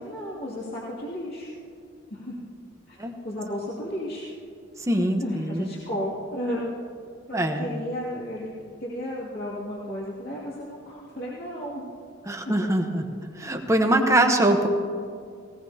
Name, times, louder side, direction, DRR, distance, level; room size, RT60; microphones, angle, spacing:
voice 1, 0.0-1.5 2.1-2.4 2.9-3.0 3.2-4.3 5.2-6.6 7.3-11.9 12.4-12.6, equal, 50° left, -7 dB, 2.5 m, -33 dB
voice 2, 4.9-5.7 7.3-7.7 12.3-13.0 13.4-14.7, right 1 dB, 15° right, 4 dB, 1.0 m, -22 dB
19.0 x 18.5 x 2.9 m, 2.3 s
head